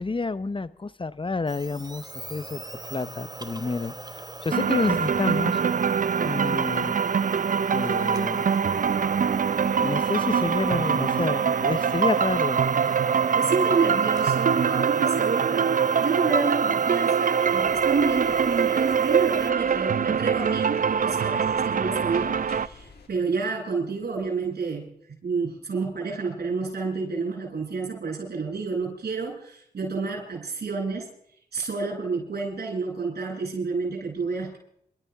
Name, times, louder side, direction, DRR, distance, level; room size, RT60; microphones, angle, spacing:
voice 1, 0.0-2.6 2.9-5.6 6.2-7.0 7.7-8.5 9.8-12.6, left 3 dB, 30° left, 16 dB, 1.0 m, -29 dB
sound 1, 1.5-19.5, right 2 dB, 25° right, 1.2 m, -40 dB
sound 2, 4.5-22.7, right 6 dB, 55° right, 0.6 m, -23 dB
voice 2, 13.3-24.9 25.2-31.1 31.5-34.6, right 4 dB, 75° right, -3 dB, 7.4 m, -29 dB
sound 3, 17.4-23.1, left 4 dB, 80° left, 3.0 m, -49 dB
27.5 x 13.5 x 3.6 m, 0.69 s
cardioid pair, 50°, 17 cm